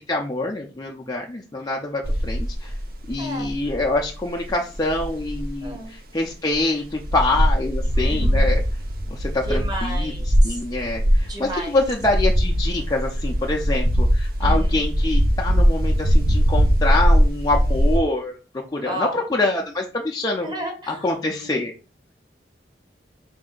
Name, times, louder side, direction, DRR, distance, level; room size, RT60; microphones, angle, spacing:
voice 1, 0.1-2.7 3.1-8.6 9.1-10.1 10.4-18.4 18.7-20.5 20.9-21.7, left 2 dB, 20° left, 0 dB, 0.4 m, -25 dB
sound 1, 2.0-5.7 6.2-6.3 6.5-6.6 6.9-18.0, equal, 55° right, 0.6 m, -20 dB
voice 2, 3.2-3.5 5.6-5.9 8.0-8.6 9.4-10.6 11.2-11.8 14.4-14.8 18.8-19.2 20.4-21.5, right 1 dB, 25° right, 3 dB, 1.1 m, -33 dB
4.2 x 2.6 x 3.7 m, 0.33 s
head